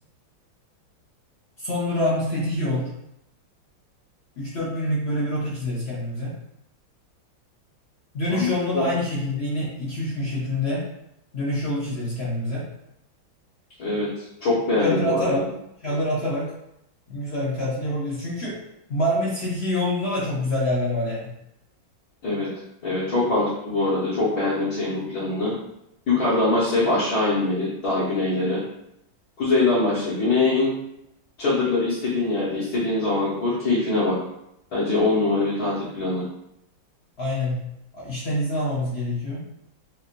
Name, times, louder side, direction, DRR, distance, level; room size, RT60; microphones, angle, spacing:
voice 1, 1.6-2.9 4.4-6.4 8.1-10.9 11.3-12.7 14.8-15.5 15.8-16.5 17.1-18.6 18.9-21.3 37.2-37.6 37.9-39.5, left 1 dB, 75° left, -6 dB, 0.5 m, -26 dB
voice 2, 13.8-15.4 22.2-22.5 22.8-25.5 26.1-28.6 29.4-30.7 31.4-34.2 34.7-36.2, left 2 dB, 50° left, -12 dB, 1.5 m, -23 dB
4.5 x 2.5 x 2.5 m, 0.81 s
omnidirectional pair, 2.2 m